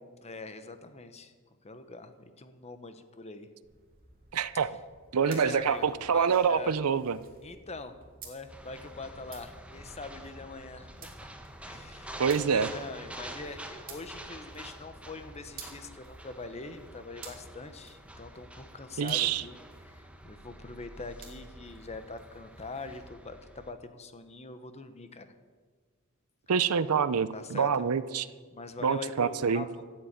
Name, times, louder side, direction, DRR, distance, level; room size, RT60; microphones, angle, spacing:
voice 1, 0.2-1.3 1.6-3.5 5.2-6.8 7.4-11.3 11.6-25.3 27.3-27.9 28.5-29.9, left 3 dB, 30° left, 9 dB, 1.0 m, -43 dB
sound 1, 3.6-23.1, right 4 dB, 40° right, 3.0 m, -53 dB
voice 2, 4.3-4.8 5.1-7.2 12.2-12.7 19.0-19.4 26.5-28.2 28.8-29.6, right 6 dB, 85° right, 15 dB, 0.6 m, -26 dB
sound 2, 8.5-23.7, right 1 dB, 5° right, 1.0 m, -47 dB
14.0 x 7.9 x 8.8 m, 1.5 s
head